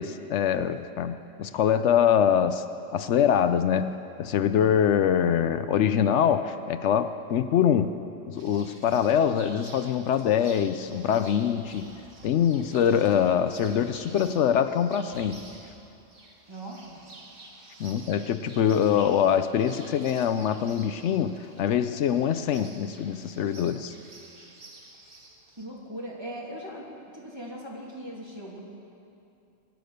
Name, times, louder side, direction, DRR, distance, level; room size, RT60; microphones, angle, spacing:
voice 1, 0.0-2.6 2.9-3.9 4.2-8.0 8.3-11.9 12.2-15.4 17.8-23.9, left 8 dB, 80° left, 11 dB, 0.9 m, -24 dB
sound 1, 8.3-25.6, right 2 dB, 50° right, 1.7 m, -50 dB
voice 2, 16.5-17.0 25.5-26.9 27.1-28.6, right 1 dB, 20° right, -4 dB, 2.8 m, -39 dB
23.0 x 9.3 x 6.6 m, 2.6 s
omnidirectional pair, 1.2 m